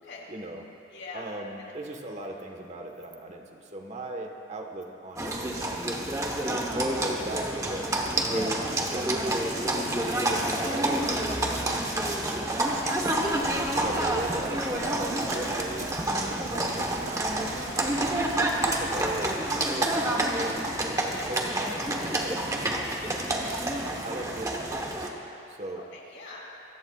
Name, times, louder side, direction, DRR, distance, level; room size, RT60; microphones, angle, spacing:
voice 1, 0.3-0.6 1.1-7.9 8.2-8.6 8.9-12.4 13.8-18.3 18.6-22.7 24.0-25.2 25.5-25.8, right 1 dB, 35° right, 3 dB, 1.3 m, -39 dB
voice 2, 0.9-1.2 1.6-1.7 8.2-8.4 12.6-13.2 13.8-14.0 21.0-21.3 25.7-26.4, left 3 dB, 65° left, -4 dB, 3.7 m, -44 dB
Livestock farm animals working animals, 5.2-25.1, right 1 dB, 15° right, 1.1 m, -28 dB
Rain, 12.6-19.4, right 3 dB, 90° right, 1.1 m, -41 dB
26.5 x 16.0 x 2.4 m, 2.8 s
head